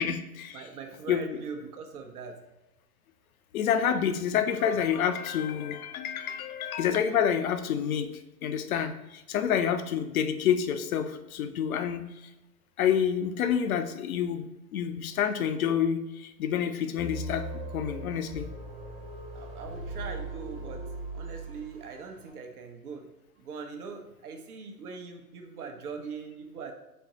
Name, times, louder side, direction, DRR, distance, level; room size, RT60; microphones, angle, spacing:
voice 1, 0.0-0.7 1.1-1.4 3.5-8.1 8.4-12.1 12.8-14.5 14.7-18.5, left 8 dB, 65° left, 9 dB, 0.5 m, -28 dB
voice 2, 0.5-2.4 19.3-20.8 21.1-23.1 23.4-26.7, right 5 dB, 70° right, 5 dB, 0.8 m, -41 dB
sound 1, 17.0-22.0, right 2 dB, 15° right, 0.7 m, -39 dB
4.2 x 2.0 x 3.8 m, 0.98 s
hypercardioid pair, 120°, 46 cm